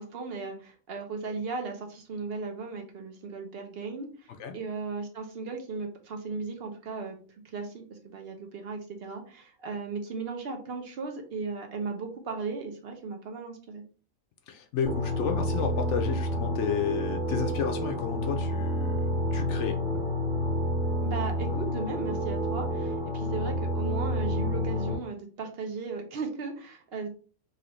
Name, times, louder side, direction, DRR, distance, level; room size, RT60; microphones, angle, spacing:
voice 1, 0.0-7.2 7.5-13.8 21.0-27.1, right 4 dB, 60° right, 4 dB, 0.8 m, -36 dB
voice 2, 14.5-19.8, left 7 dB, 70° left, 4 dB, 0.9 m, -32 dB
sound 1, 14.9-25.0, left 1 dB, 30° left, 1.0 m, -29 dB
3.2 x 2.4 x 3.0 m, 0.38 s
omnidirectional pair, 1.3 m